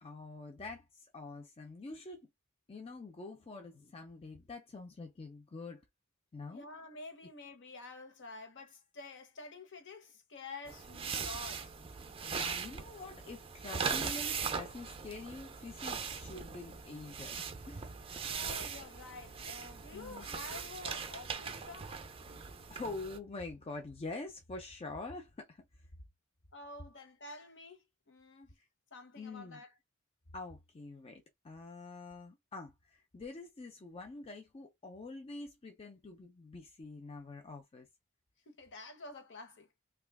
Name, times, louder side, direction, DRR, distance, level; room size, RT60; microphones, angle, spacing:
voice 1, 0.0-2.3 2.7-5.8 6.3-6.7 12.2-17.9 19.9-20.3 22.7-25.6 28.6-28.7 29.2-29.6 30.3-37.9, left 3 dB, 25° left, 0.5 m, -46 dB
voice 2, 6.5-11.7 18.2-22.1 26.5-28.6 28.9-29.7 38.5-39.7, left 3 dB, 55° left, 0.9 m, -49 dB
sound 1, 10.7-23.2, right 6 dB, 25° right, 0.5 m, -40 dB
2.8 x 2.3 x 3.4 m
head